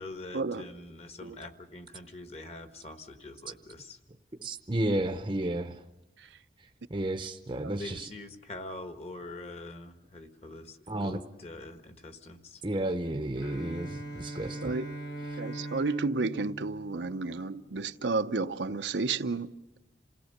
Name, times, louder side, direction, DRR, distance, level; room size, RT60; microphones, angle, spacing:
voice 1, 0.0-4.0 7.8-12.6, left 2 dB, 35° left, 1.3 m, -44 dB
voice 2, 4.4-5.8 6.9-8.1 10.9-11.2 12.6-14.8 15.3-15.4, right 1 dB, 25° right, 0.7 m, -32 dB
Bowed string instrument, 13.4-17.5, right 1 dB, 75° left, 4.2 m, -41 dB
voice 3, 15.4-19.5, right 3 dB, 85° right, 0.7 m, -31 dB
27.5 x 17.5 x 6.6 m
head